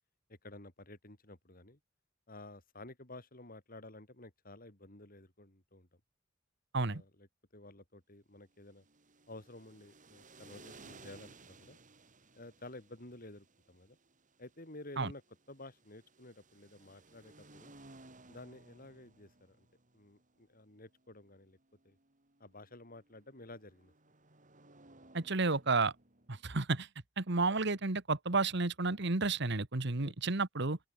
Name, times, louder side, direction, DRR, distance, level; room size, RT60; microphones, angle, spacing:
voice 1, 0.3-1.8 2.3-5.9 6.7-7.3 7.5-8.8 9.3-11.8 12.3-14.0 14.4-15.2 15.5-17.7 18.3-19.7 19.9-21.6 21.8-22.0 22.4-23.9 30.0-30.3, left 2 dB, 50° left, 5.1 m, -52 dB
sound 1, 8.5-26.4, right 3 dB, 40° right, 4.3 m, -60 dB
voice 2, 25.1-25.9 26.3-26.9 27.2-30.8, right 3 dB, 60° right, 1.6 m, -31 dB
open air
head